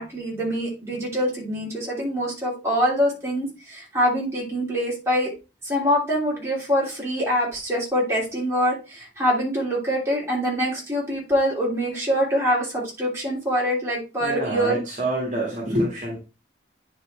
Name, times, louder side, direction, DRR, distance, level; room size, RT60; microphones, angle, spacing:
voice 1, 0.0-5.3 5.6-14.8, equal, 15° right, -5 dB, 3.1 m, -24 dB
voice 2, 14.2-16.2, right 1 dB, 40° right, -2 dB, 2.0 m, -26 dB
9.6 x 4.5 x 3.3 m, 0.29 s
head